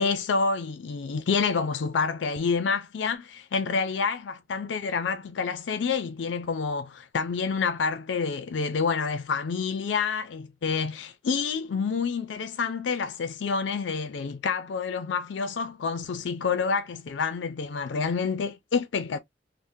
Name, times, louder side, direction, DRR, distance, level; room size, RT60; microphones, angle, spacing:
voice 1, 0.0-19.2, left 5 dB, 75° left, 0.4 m, -28 dB
3.5 x 2.1 x 2.6 m
head